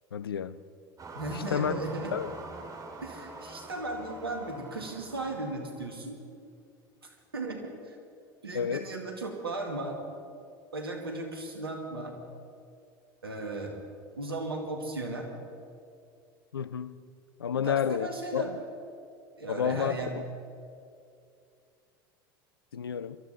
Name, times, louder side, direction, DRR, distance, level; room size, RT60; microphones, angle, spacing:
voice 1, 0.1-0.6 1.3-1.7 2.1-2.3 8.5-8.9 16.5-17.0 17.4-18.4 19.5-20.2 22.7-23.2, left 8 dB, 85° left, 0.5 m, -30 dB
sound 1, 1.0-5.9, right 3 dB, 30° right, 2.4 m, -45 dB
voice 2, 1.1-2.1 3.0-6.2 7.3-8.0 8.4-10.0 10.7-12.2 13.2-13.8 14.2-15.3 17.5-18.5 19.4-20.2, right 2 dB, 90° right, 1.8 m, -36 dB
22.5 x 13.0 x 4.0 m
figure-of-eight pair, 70°, 12 cm